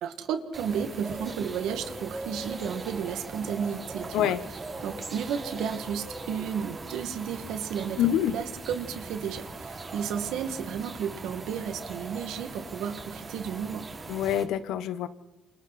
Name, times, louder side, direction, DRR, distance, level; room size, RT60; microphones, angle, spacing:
voice 1, 0.0-4.4 4.8-13.9, right 7 dB, 90° right, 8 dB, 2.1 m, -33 dB
sound 1, 0.5-14.4, right 3 dB, 35° right, 5.2 m, -40 dB
voice 2, 8.0-8.3 14.1-15.1, left 10 dB, 85° left, 14 dB, 1.1 m, -26 dB
28.5 x 26.5 x 4.3 m, 0.99 s
cardioid pair, 90°, 0 cm